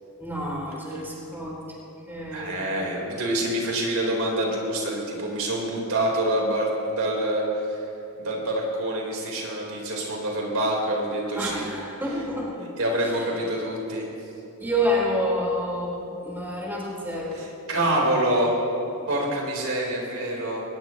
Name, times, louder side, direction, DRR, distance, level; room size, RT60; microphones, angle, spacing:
voice 1, 0.2-1.6 2.1-2.6 11.3-12.5 12.9-13.2 14.6-17.3, equal, 10° right, -5 dB, 4.3 m, -28 dB
voice 2, 2.3-7.8 8.2-11.7 12.6-14.1 17.4-18.6 19.1-20.6, right 1 dB, 90° right, -2 dB, 4.0 m, -26 dB
21.5 x 20.5 x 3.1 m, 2.9 s
head